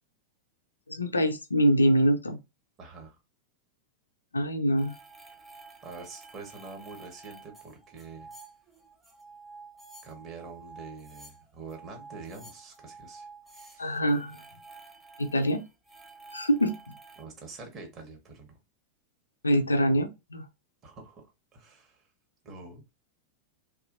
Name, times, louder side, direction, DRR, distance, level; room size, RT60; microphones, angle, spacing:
voice 1, 0.9-2.4 4.3-5.0 13.8-14.4 15.2-15.6 16.3-16.7 19.4-20.5, equal, 80° left, 0.4 m, -24 dB
voice 2, 2.8-3.2 5.8-8.3 10.0-13.9 17.2-18.6 20.8-22.1 22.4-22.8, right 4 dB, 30° right, 1.0 m, -46 dB
sound 1, 4.8-17.2, right 3 dB, 5° right, 0.7 m, -50 dB
2.7 x 2.4 x 2.5 m
figure-of-eight pair, 90°, 0 cm